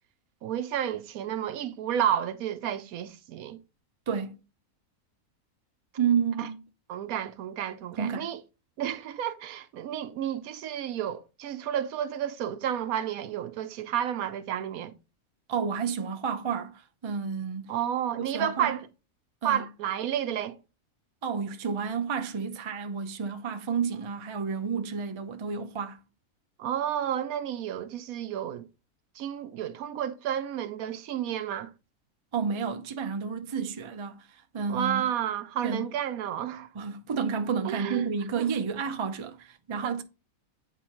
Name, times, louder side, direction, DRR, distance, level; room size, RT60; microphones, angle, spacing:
voice 1, 0.4-3.6 6.4-6.5 6.9-8.4 8.8-14.9 17.7-18.9 19.4-20.6 26.6-28.7 29.2-31.7 34.7-36.7 37.6-38.0 38.4-38.6 39.8-39.9, right 10 dB, 80° right, 1.1 m, -31 dB
voice 2, 4.1-4.4 6.0-6.6 7.9-8.3 15.5-17.7 18.2-18.7 19.4-19.7 21.2-26.0 32.3-35.1 35.6-35.9 36.7-40.0, right 6 dB, 35° right, 0.4 m, -31 dB
9.2 x 3.8 x 3.0 m
omnidirectional pair, 1.5 m